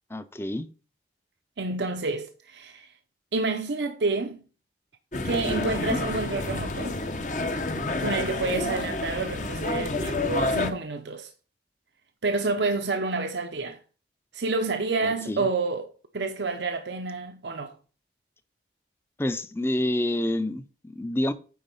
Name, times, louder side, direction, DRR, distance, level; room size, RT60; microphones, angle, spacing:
voice 1, 0.1-0.7 5.5-6.0 15.0-15.4 19.2-21.3, left 1 dB, 15° left, 0.5 m, -28 dB
voice 2, 1.6-2.9 3.3-4.4 5.2-7.0 8.0-11.3 12.2-13.8 14.3-17.7, right 3 dB, 85° right, 0.8 m, -29 dB
sound 1, 5.1-10.7, left 2 dB, 45° left, 0.9 m, -29 dB
9.4 x 4.1 x 5.4 m
head